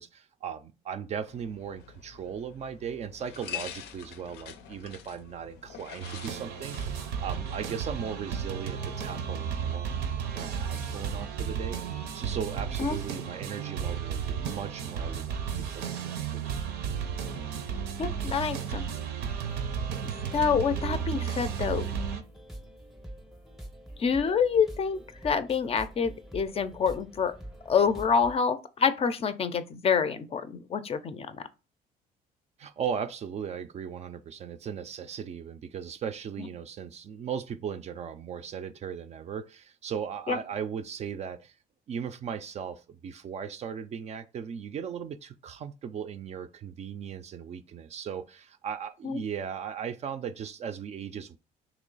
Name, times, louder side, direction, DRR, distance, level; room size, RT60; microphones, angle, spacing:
voice 1, 0.0-10.0 10.3-11.8 12.1-15.4 15.7-16.6 32.6-41.5 41.9-51.4, right 7 dB, 40° right, 0.4 m, -37 dB
sound 1, 1.3-9.3, left 9 dB, 85° left, 0.5 m, -46 dB
sound 2, 6.0-22.2, right 7 dB, 85° right, 0.6 m, -33 dB
voice 2, 18.0-18.8 20.3-21.9 24.0-27.3 27.7-31.4 36.4-36.5 40.3-40.4 49.0-49.2, left 6 dB, 35° left, 0.4 m, -27 dB
sound 3, 19.3-28.4, right 1 dB, ahead, 0.6 m, -46 dB
3.1 x 2.9 x 3.9 m
cardioid pair, 110°, 17 cm